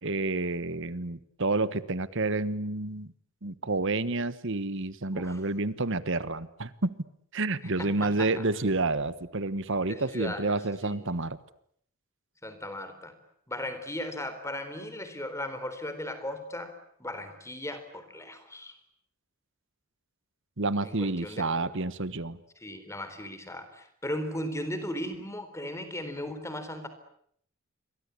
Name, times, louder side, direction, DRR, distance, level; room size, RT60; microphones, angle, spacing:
voice 1, 0.0-3.1 3.4-7.0 7.3-11.4 20.6-22.4, right 2 dB, 60° right, 15 dB, 1.3 m, -29 dB
voice 2, 7.8-8.4 9.9-10.5 10.8-11.1 12.4-13.1 13.5-18.8 20.8-21.7 22.6-26.9, left 1 dB, 15° left, 10 dB, 3.9 m, -37 dB
29.5 x 24.0 x 8.4 m, 0.66 s
head